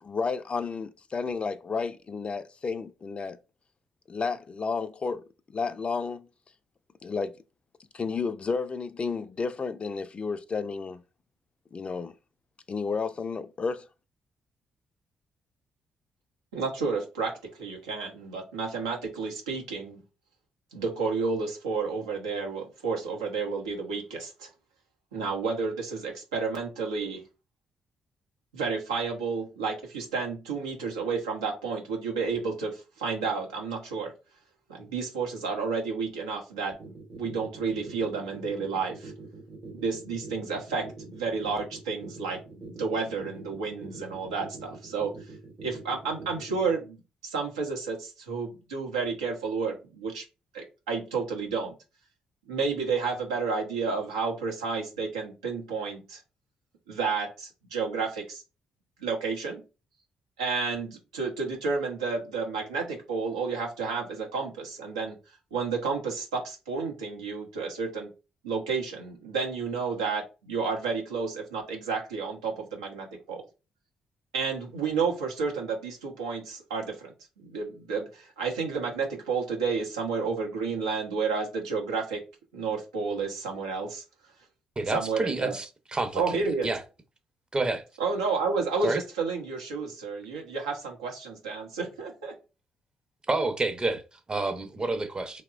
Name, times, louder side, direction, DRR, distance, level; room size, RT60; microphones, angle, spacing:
voice 1, 0.0-3.4 4.1-5.2 5.5-6.3 7.0-7.3 7.9-11.0 11.7-12.1 12.7-13.8, left 5 dB, 35° left, 0.3 m, -31 dB
voice 2, 16.5-20.0 20.7-24.5 25.1-27.2 28.5-34.1 34.7-39.1 39.7-45.1 45.6-50.2 50.5-51.7 52.5-56.2 56.9-58.4 59.0-59.6 60.4-65.2 65.5-68.1 68.4-73.4 74.3-82.2 82.5-84.0 84.9-85.5 86.1-86.7 88.0-92.3, right 4 dB, 85° right, 0.6 m, -31 dB
sound 1, 36.7-46.7, right 3 dB, 55° right, 0.9 m, -44 dB
voice 3, 84.8-86.8 87.5-87.8 88.8-89.0 93.3-95.4, right 2 dB, 30° right, 0.6 m, -29 dB
2.9 x 2.1 x 2.4 m
hypercardioid pair, 40°, 3 cm